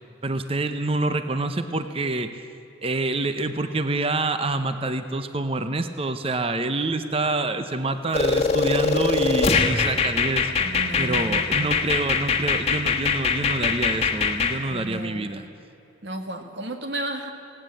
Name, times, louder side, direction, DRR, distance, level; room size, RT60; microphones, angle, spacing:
voice 1, 0.2-2.4 2.8-10.5 11.0-15.4, right 2 dB, 30° right, 9 dB, 0.7 m, -27 dB
sound 1, 8.1-14.5, left 5 dB, 30° left, 1.4 m, -22 dB
voice 2, 10.6-11.8 14.7-15.3 16.0-17.3, right 2 dB, 60° right, 5 dB, 2.1 m, -33 dB
19.0 x 17.5 x 7.7 m, 2.8 s
head